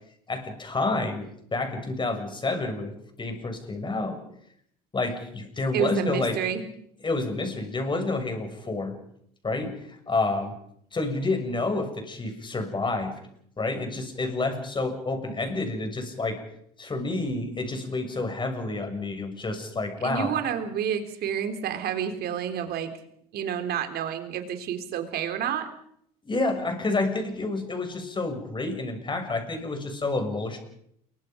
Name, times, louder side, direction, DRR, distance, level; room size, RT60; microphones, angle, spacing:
voice 1, 0.3-2.9 3.2-4.2 4.9-6.4 7.0-9.0 9.4-10.5 10.9-13.1 13.6-16.4 16.8-20.3 26.2-30.6, left 2 dB, 25° left, 6 dB, 6.8 m, -29 dB
voice 2, 5.7-6.6 20.0-22.9 23.3-25.7, right 9 dB, 60° right, 8 dB, 3.8 m, -29 dB
29.0 x 23.5 x 5.3 m, 0.70 s
hypercardioid pair, 70°, 19 cm